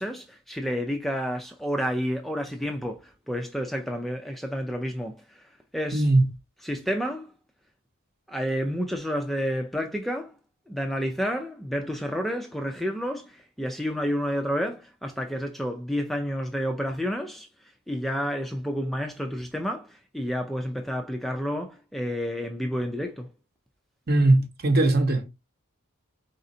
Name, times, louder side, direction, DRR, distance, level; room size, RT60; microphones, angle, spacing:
voice 1, 0.0-6.1 6.6-7.3 8.3-10.3 10.7-23.3, equal, ahead, 0.3 m, -30 dB
voice 2, 5.9-6.2 24.1-25.2, right 2 dB, 45° right, 0.8 m, -20 dB
4.1 x 3.8 x 2.6 m
head